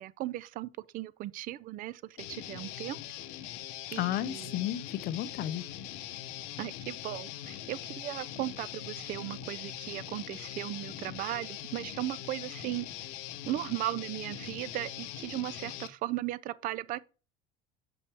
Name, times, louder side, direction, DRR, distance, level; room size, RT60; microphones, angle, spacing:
voice 1, 0.0-2.0 2.3-3.0 3.9-4.5 6.6-12.9 13.5-17.0, right 15 dB, 40° right, 0.4 m, -37 dB
Guitar, 2.2-15.9, left 12 dB, 80° left, 0.8 m, -42 dB
voice 2, 4.0-5.6, left 12 dB, 50° left, 0.5 m, -33 dB
7.0 x 5.7 x 3.4 m
cardioid pair, 160°, 21 cm